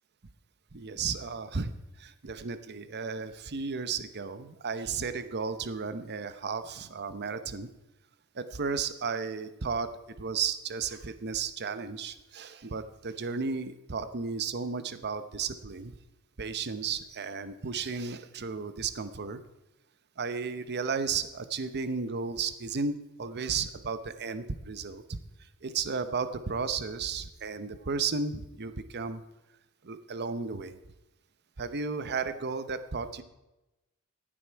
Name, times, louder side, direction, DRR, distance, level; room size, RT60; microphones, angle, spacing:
voice 1, 0.7-1.7 2.0-7.7 8.3-9.9 10.2-15.9 16.4-19.4 20.2-25.2 25.6-29.2 29.8-30.8 31.6-33.2, right 5 dB, 50° right, 12 dB, 0.8 m, -34 dB
15.5 x 10.0 x 4.6 m, 0.97 s
head